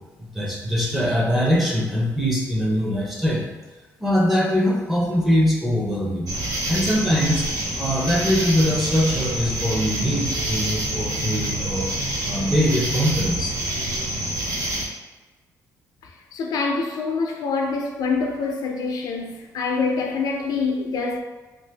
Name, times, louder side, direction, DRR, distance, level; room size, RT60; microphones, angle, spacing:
voice 1, 0.2-3.4 4.0-6.3 6.7-7.5 7.8-11.9 12.3-13.6, equal, 5° right, -2 dB, 0.7 m, -22 dB
sound 1, 6.3-14.9, right 1 dB, 60° right, 0.7 m, -27 dB
voice 2, 16.3-21.2, left 4 dB, 75° left, 1 dB, 0.5 m, -25 dB
2.6 x 2.6 x 3.3 m, 1.2 s
cardioid pair, 110°, 7 cm